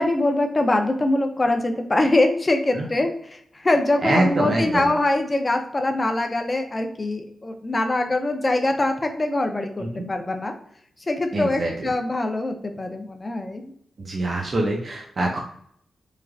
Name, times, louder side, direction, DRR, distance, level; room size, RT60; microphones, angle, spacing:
voice 1, 0.0-10.6 11.0-13.6, left 2 dB, 30° left, 5 dB, 0.4 m, -23 dB
voice 2, 4.0-4.9 9.8-10.1 11.3-11.9 14.0-15.4, right 2 dB, 45° right, -1 dB, 0.5 m, -24 dB
3.2 x 2.4 x 2.3 m, 0.66 s
cardioid pair, 75°, 0 cm